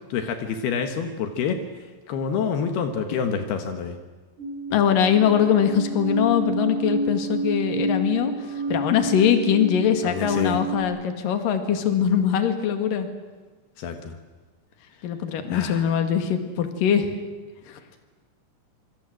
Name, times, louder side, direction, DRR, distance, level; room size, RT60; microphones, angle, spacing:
voice 1, 0.1-1.6 2.1-4.0 10.0-10.6 13.8-14.2 15.5-15.8, left 6 dB, 80° left, 6 dB, 3.5 m, -27 dB
sound 1, 4.4-10.8, right 1 dB, 90° right, 5.5 m, -29 dB
voice 2, 4.7-13.1 15.0-17.2 17.7-17.8, left 8 dB, 65° left, 7 dB, 3.5 m, -22 dB
27.0 x 24.5 x 7.8 m, 1.3 s
omnidirectional pair, 4.5 m